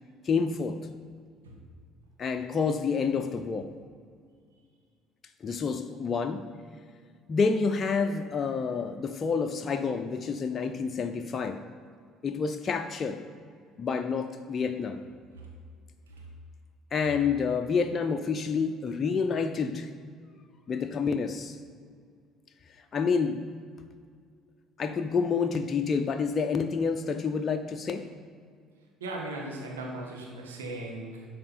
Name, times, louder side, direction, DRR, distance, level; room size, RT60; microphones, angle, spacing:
voice 1, 0.2-0.8 2.2-3.8 5.4-6.5 7.3-11.6 12.2-13.2 13.8-15.0 16.9-19.9 20.7-21.6 22.9-23.5 24.8-28.1, left 5 dB, 40° left, 7 dB, 0.6 m, -28 dB
voice 2, 29.0-31.3, right 2 dB, 90° right, -1 dB, 1.7 m, -38 dB
12.0 x 5.1 x 4.4 m, 2.1 s
hypercardioid pair, 60°, 0 cm